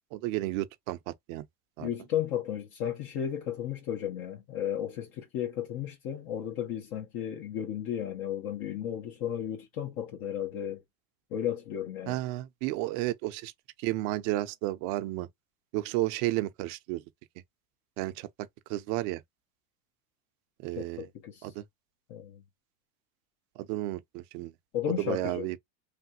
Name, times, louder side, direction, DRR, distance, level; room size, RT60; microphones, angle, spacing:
voice 1, 0.1-1.5 1.8-1.9 12.1-13.5 13.8-15.3 15.7-17.0 18.0-18.3 18.7-19.2 20.6-21.1 21.4-21.6 23.6-24.5 25.0-25.6, right 17 dB, 65° right, 0.7 m, -32 dB
voice 2, 1.8-10.8 11.3-12.2 20.7-21.5 22.1-22.4 24.7-25.5, left 10 dB, 60° left, 1.2 m, -34 dB
3.3 x 2.2 x 2.7 m
supercardioid pair, 105°, 42 cm